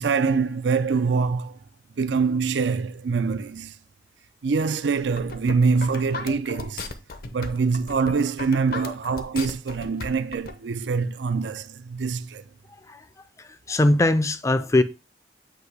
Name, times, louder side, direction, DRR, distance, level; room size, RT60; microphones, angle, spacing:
voice 1, 0.0-1.6 2.0-3.8 4.4-6.9 7.3-12.4, right 5 dB, 90° right, 0.5 m, -24 dB
sound 1, 5.0-10.5, left 3 dB, 55° left, 0.7 m, -35 dB
voice 2, 13.4-14.8, left 2 dB, 15° left, 0.4 m, -21 dB
8.0 x 2.8 x 4.7 m
head